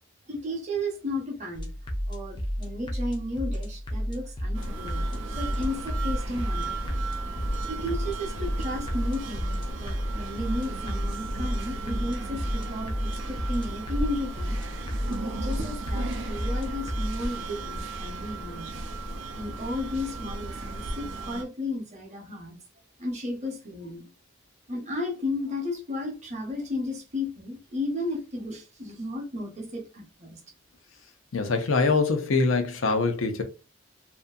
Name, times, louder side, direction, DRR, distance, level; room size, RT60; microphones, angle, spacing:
voice 1, 0.3-1.7 2.1-6.9 7.7-14.6 15.1-18.8 19.3-22.6 23.0-24.0 24.7-30.4, left 1 dB, 35° right, 0.8 m, -34 dB
sound 1, 1.5-17.2, equal, 25° left, 0.4 m, -32 dB
sound 2, 4.5-21.4, right 2 dB, 70° right, 0.5 m, -35 dB
voice 2, 31.3-33.4, left 3 dB, 80° left, 0.6 m, -24 dB
2.6 x 2.5 x 2.3 m
head